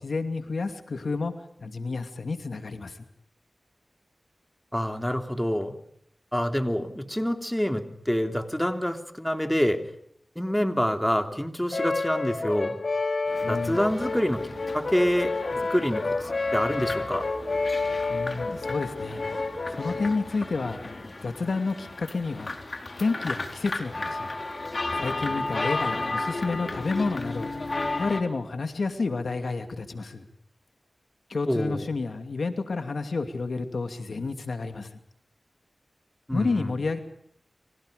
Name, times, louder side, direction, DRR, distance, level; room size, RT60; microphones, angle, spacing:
voice 1, 0.0-1.3 1.6-3.0 13.4-13.9 18.1-19.2 19.7-20.8 21.2-22.5 23.0-24.3 24.9-27.5 28.0-30.3 31.3-34.9 36.3-37.0, left 3 dB, 80° left, 8 dB, 2.5 m, -30 dB
voice 2, 4.7-5.7 6.3-9.8 10.3-12.7 13.5-14.5 14.7-15.3 15.6-17.3 31.5-31.8 36.3-36.7, equal, 10° left, 7 dB, 3.1 m, -27 dB
Brass instrument, 11.7-20.3, left 3 dB, 65° left, 3.9 m, -29 dB
sound 1, 13.3-28.2, left 2 dB, 50° left, 3.7 m, -34 dB
30.0 x 24.5 x 5.1 m, 0.68 s
wide cardioid pair, 55°, 0 cm